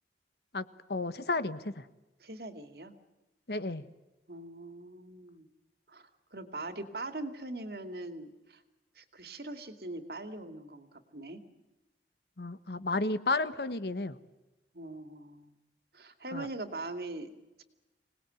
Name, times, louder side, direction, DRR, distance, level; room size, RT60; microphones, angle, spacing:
voice 1, 0.5-1.8 3.5-3.8 12.4-14.2 16.3-16.5, left 3 dB, 65° left, 13 dB, 1.3 m, -32 dB
voice 2, 2.2-2.9 4.3-5.5 5.9-8.6 9.0-11.4 14.7-15.5 15.9-17.6, right 2 dB, 60° right, 8 dB, 2.5 m, -42 dB
26.5 x 19.5 x 9.4 m, 1.0 s
head